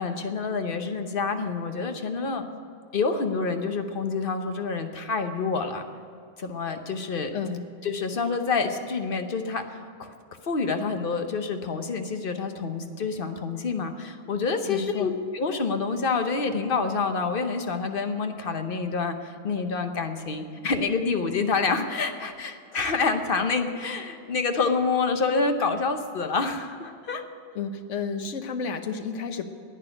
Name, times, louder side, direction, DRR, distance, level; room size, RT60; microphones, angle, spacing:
voice 1, 0.0-2.4 2.9-5.8 6.4-7.3 7.8-10.1 10.5-27.2, left 4 dB, 50° left, 7 dB, 1.1 m, -27 dB
voice 2, 7.3-7.6 14.7-15.1 27.5-29.5, left 5 dB, 75° left, 8 dB, 1.2 m, -31 dB
11.0 x 8.9 x 9.9 m, 2.4 s
omnidirectional pair, 1.3 m